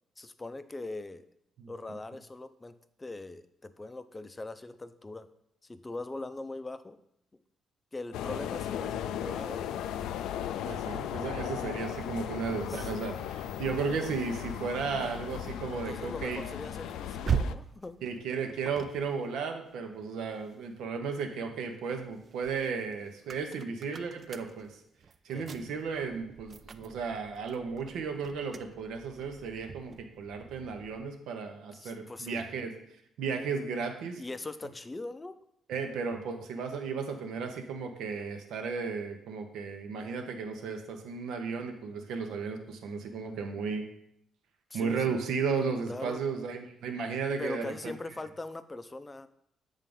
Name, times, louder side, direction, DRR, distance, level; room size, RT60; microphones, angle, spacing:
voice 1, 0.2-1.3 1.7-5.3 5.6-7.0 7.9-9.8 12.7-12.9 15.9-18.0 25.3-25.5 31.8-32.5 34.2-35.4 44.7-45.2 45.9-46.2 47.4-49.3, left 2 dB, 20° left, 12 dB, 0.5 m, -41 dB
sound 1, 8.1-17.5, left 10 dB, 90° left, 0.3 m, -36 dB
voice 2, 10.6-16.4 18.0-24.7 25.2-32.7 33.2-34.2 35.7-43.8 44.7-47.9, right 5 dB, 80° right, 5 dB, 0.9 m, -34 dB
sound 2, 14.4-20.9 21.4-31.2, right 6 dB, 45° right, 0.4 m, -41 dB
7.4 x 3.6 x 5.4 m, 0.75 s
cardioid pair, 90°, 0 cm